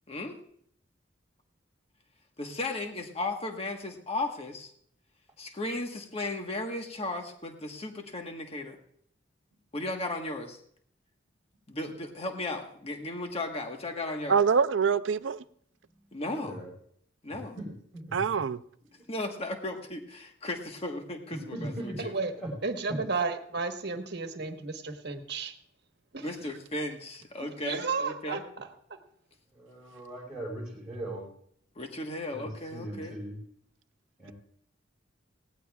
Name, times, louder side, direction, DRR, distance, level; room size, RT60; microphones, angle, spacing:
voice 1, 0.1-0.4 2.4-4.7 5.4-8.8 9.7-10.6 11.7-14.4 16.1-16.6 17.2-17.6 19.1-22.1 26.2-28.4 31.7-33.2, left 2 dB, 30° left, 3 dB, 1.4 m, -35 dB
voice 2, 14.3-15.4 18.1-18.6, right 6 dB, 80° right, 14 dB, 0.5 m, -25 dB
voice 3, 16.4-16.7 17.6-18.2 19.0-19.1 21.5-22.0 22.4-22.5 29.5-31.2 32.3-33.4 34.2-34.3, right 1 dB, 5° right, -5 dB, 4.8 m, -39 dB
voice 4, 22.0-22.3 22.6-25.5 26.1-26.3 27.6-29.0, right 4 dB, 60° right, 6 dB, 1.3 m, -33 dB
19.5 x 17.0 x 2.4 m, 0.65 s
head